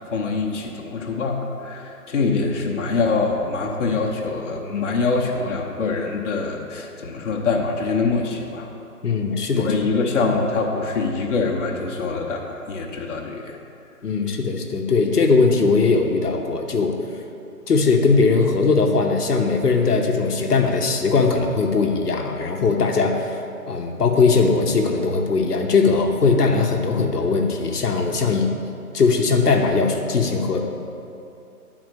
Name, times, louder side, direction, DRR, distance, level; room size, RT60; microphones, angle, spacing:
voice 1, 0.1-8.7 9.5-13.6, left 4 dB, 50° left, -1 dB, 0.9 m, -24 dB
voice 2, 9.0-9.7 14.0-16.9 17.7-23.4 23.7-28.5 28.9-30.6, left 4 dB, 75° left, 2 dB, 1.1 m, -19 dB
9.4 x 4.3 x 6.1 m, 2.7 s
figure-of-eight pair, 155°, 47 cm